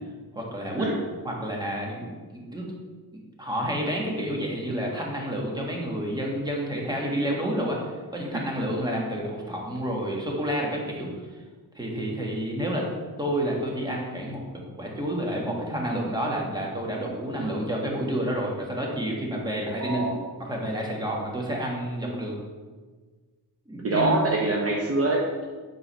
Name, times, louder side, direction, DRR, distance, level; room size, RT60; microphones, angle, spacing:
voice 1, 0.3-0.9 1.2-2.7 3.4-7.8 8.1-11.1 11.7-12.9 13.2-20.1 20.4-22.3 23.7-24.1, equal, 10° right, -2 dB, 1.6 m, -29 dB
voice 2, 19.8-20.2 23.8-25.4, right 2 dB, 35° right, -2 dB, 0.9 m, -25 dB
8.9 x 3.9 x 5.5 m, 1.4 s
wide cardioid pair, 140°, 38 cm